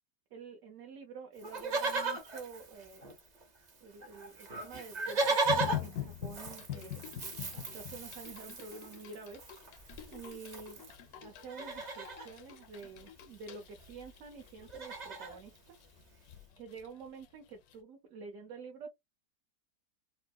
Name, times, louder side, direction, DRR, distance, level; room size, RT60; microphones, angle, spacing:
voice 1, 0.3-3.2 3.8-10.8 11.2-15.8 16.1-18.9, right 5 dB, 60° right, 0.9 m, -49 dB
Livestock farm animals working animals, 1.4-3.4 3.7-3.8 4.0-11.0 11.4-12.3 13.5-13.6 13.8-14.1 14.4-15.4 16.0-16.1, right 3 dB, 40° right, 0.6 m, -37 dB
sound 1, 5.5-17.3 17.7-17.8, left 11 dB, 70° left, 1.0 m, -44 dB
4.4 x 2.1 x 2.2 m
omnidirectional pair, 1.8 m